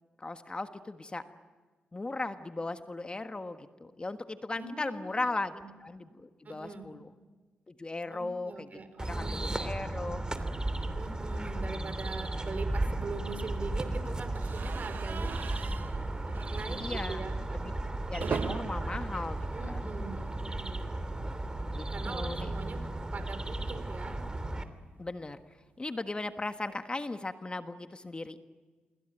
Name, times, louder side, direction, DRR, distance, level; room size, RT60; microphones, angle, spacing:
voice 1, 0.2-1.2 1.9-5.5 5.8-7.1 7.7-8.7 9.0-10.2 11.6-11.7 16.7-17.2 17.5-17.7 18.1-19.9 21.7-22.5 25.0-25.4 25.8-28.4, left 2 dB, 30° left, 8 dB, 1.5 m, -37 dB
voice 2, 4.5-5.2 5.5-5.7 6.4-6.9 8.1-9.6 10.9-15.7 16.5-17.4 19.5-20.8 21.9-22.8 23.1-24.2, right 3 dB, 50° right, 9 dB, 5.0 m, -42 dB
sound 1, 9.0-24.6, right 2 dB, 20° right, 3.0 m, -35 dB
sound 2, 14.4-20.4 20.7-20.9 21.1-21.2 22.5-24.8, right 7 dB, 65° right, 1.0 m, -42 dB
27.0 x 23.0 x 9.1 m, 1.4 s
supercardioid pair, 55°, 4 cm